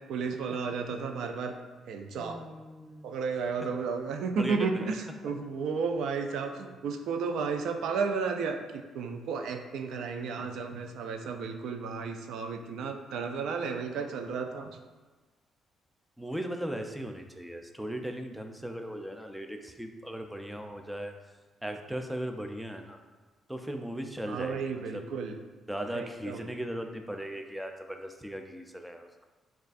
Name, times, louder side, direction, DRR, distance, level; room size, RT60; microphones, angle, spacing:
voice 1, 0.0-1.5 1.9-2.4 3.0-14.8 24.2-25.4 25.9-26.5, right 5 dB, 80° right, 5 dB, 0.4 m, -33 dB
voice 2, 2.2-3.1 4.4-4.9 16.2-21.1 21.6-23.0 23.5-24.6 24.9-25.0 25.7-29.3, right 1 dB, 5° right, 4 dB, 0.4 m, -38 dB
6.3 x 2.4 x 2.5 m, 1.3 s
cardioid pair, 90°, 0 cm